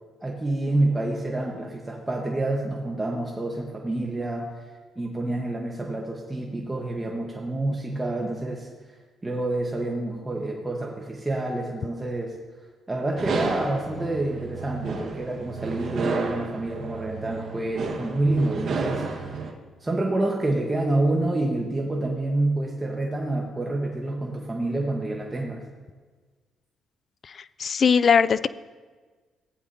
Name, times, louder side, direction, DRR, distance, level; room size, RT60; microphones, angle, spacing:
voice 1, 0.2-9.0 9.2-12.4 12.9-19.4 19.8-25.6, right 2 dB, 20° right, -1 dB, 1.3 m, -28 dB
sound 1, 13.2-19.5, right 4 dB, 60° right, 1.5 m, -32 dB
voice 2, 27.6-28.5, left 6 dB, 45° left, 16 dB, 0.4 m, -19 dB
15.5 x 9.5 x 2.8 m, 1.4 s
cardioid pair, 90°, 0 cm